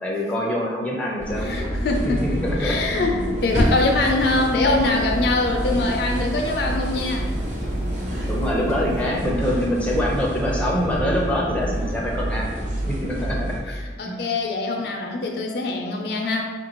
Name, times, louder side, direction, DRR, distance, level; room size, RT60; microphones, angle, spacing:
voice 1, 0.0-1.5 2.1-2.2 2.4-2.8 8.3-12.5 12.9-13.5 14.0-14.2, left 1 dB, 5° left, -3 dB, 0.5 m, -25 dB
sound 1, 1.2-13.6, equal, 40° right, 0.8 m, -27 dB
voice 2, 1.4-7.3 13.2-13.3 13.8-16.4, left 2 dB, 60° left, 2 dB, 0.4 m, -23 dB
sound 2, 3.4-9.2, right 1 dB, 65° right, 1.3 m, -39 dB
4.6 x 2.6 x 2.9 m, 1.3 s
head